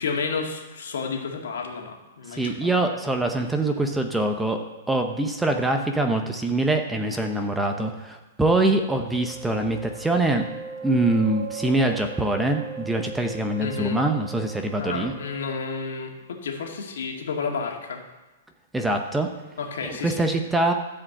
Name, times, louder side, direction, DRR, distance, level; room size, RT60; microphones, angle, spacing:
voice 1, 0.0-2.7 13.6-14.0 14.8-18.0 19.6-20.3, left 5 dB, 75° left, 2 dB, 2.1 m, -31 dB
voice 2, 2.3-4.6 4.9-10.4 10.8-15.1 18.7-19.3 19.8-20.7, right 2 dB, 5° right, 4 dB, 0.8 m, -24 dB
sound 1, 9.1-16.4, right 5 dB, 50° right, 3.0 m, -39 dB
13.5 x 5.1 x 7.8 m, 1.2 s
hypercardioid pair, 160°, 0 cm